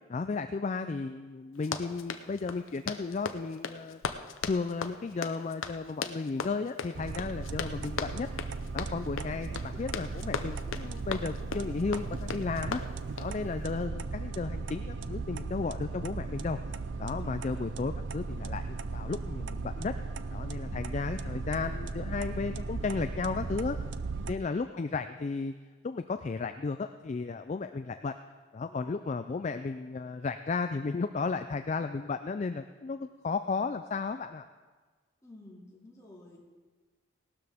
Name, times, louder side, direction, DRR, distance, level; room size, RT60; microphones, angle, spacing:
voice 1, 0.1-4.0 4.5-8.3 8.7-12.8 13.2-16.6 17.0-19.9 20.3-23.8 24.3-25.5 25.8-28.1 28.5-34.4, left 4 dB, 35° left, 9 dB, 0.3 m, -34 dB
Run, 1.5-13.4, left 5 dB, 85° left, 0.7 m, -38 dB
sound 1, 6.9-24.3, right 4 dB, 60° right, 0.5 m, -37 dB
voice 2, 35.2-36.4, left 2 dB, 15° left, -4 dB, 2.4 m, -52 dB
18.0 x 12.5 x 3.5 m, 1.4 s
head